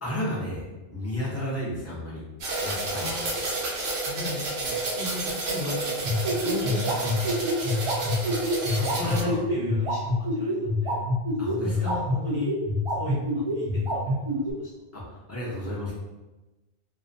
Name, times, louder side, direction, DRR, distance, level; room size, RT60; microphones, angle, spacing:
voice 1, 0.0-2.2 2.6-3.1 9.0-9.4 11.4-11.9 14.9-15.9, left 1 dB, 20° left, -6 dB, 0.4 m, -32 dB
sound 1, 2.4-9.2, right 2 dB, 75° right, 0.8 m, -31 dB
voice 2, 2.9-3.4 4.0-7.4 8.0-8.4 8.7-11.0 11.6-12.5 12.9-14.6, left 2 dB, 45° left, -10 dB, 0.9 m, -36 dB
sound 2, 6.0-14.5, equal, 50° right, 0.3 m, -26 dB
2.5 x 2.1 x 2.5 m, 1.1 s
omnidirectional pair, 1.1 m